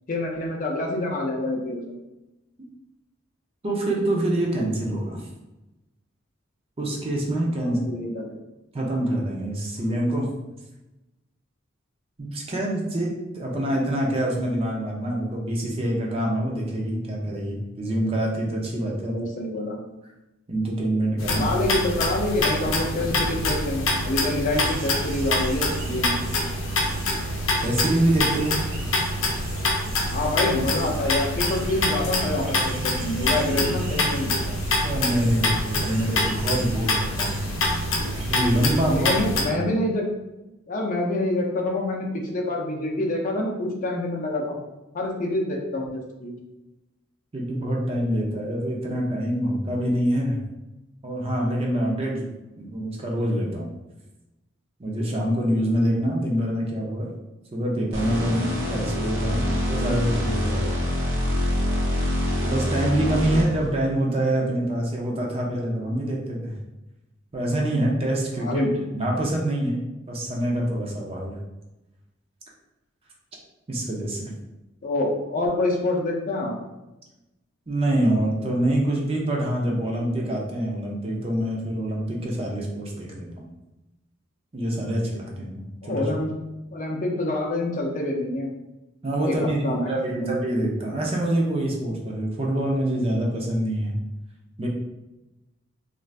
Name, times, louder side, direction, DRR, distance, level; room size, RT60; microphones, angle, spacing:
voice 1, 0.1-2.0 7.6-8.3 13.5-13.6 19.0-19.8 21.3-26.2 30.1-34.5 38.8-40.0 40.7-44.6 44.9-46.3 63.2-63.7 68.4-68.7 74.8-76.5 85.8-86.3 86.7-88.5 89.2-90.3, left 2 dB, 40° left, 0 dB, 0.5 m, -27 dB
voice 2, 3.6-5.2 6.8-7.9 8.7-10.3 12.2-19.2 20.5-21.5 27.6-28.5 34.8-37.4 38.3-39.1 39.4-39.5 47.3-50.4 51.0-52.3 52.6-53.7 54.8-57.1 57.5-60.9 62.4-66.5 67.3-68.6 68.9-69.8 70.1-71.4 73.7-74.3 77.7-83.4 84.5-86.0 89.0-94.0 94.6-94.7, right 1 dB, 30° right, -1 dB, 0.5 m, -25 dB
sound 1, 21.2-39.4, left 1 dB, 90° left, 0.6 m, -26 dB
sound 2, 24.5-38.7, right 3 dB, 80° right, 0.5 m, -41 dB
sound 3, 57.9-63.7, left 1 dB, 65° right, 0.8 m, -25 dB
2.5 x 2.4 x 3.2 m, 0.99 s
head